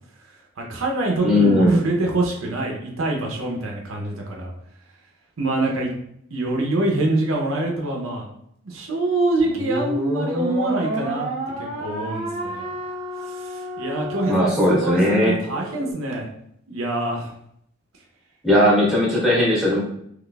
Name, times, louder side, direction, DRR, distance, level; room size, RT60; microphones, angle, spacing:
voice 1, 0.6-4.5 5.4-5.9 6.3-8.3 8.6-11.3 11.8-12.7 13.3-16.3 16.7-17.3, right 2 dB, 75° right, 0 dB, 0.7 m, -25 dB
voice 2, 1.2-1.8 14.3-15.3 18.4-19.8, left 1 dB, 5° right, -5 dB, 1.1 m, -18 dB
sound 1, 9.4-15.9, right 1 dB, 35° right, 0.9 m, -31 dB
3.9 x 3.0 x 2.3 m, 0.72 s
head